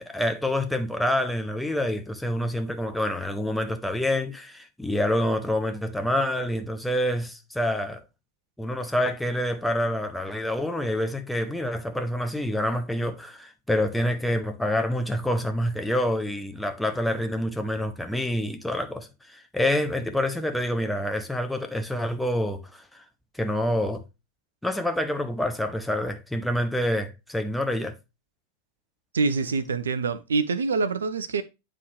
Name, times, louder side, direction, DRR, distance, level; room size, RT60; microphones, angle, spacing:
voice 1, 0.0-8.0 8.6-23.0 23.4-24.0 24.6-27.9, left 1 dB, 5° left, 0.9 m, -27 dB
voice 2, 29.1-31.4, right 4 dB, 70° right, 0.6 m, -25 dB
9.5 x 3.8 x 3.2 m
figure-of-eight pair, 90°, 0 cm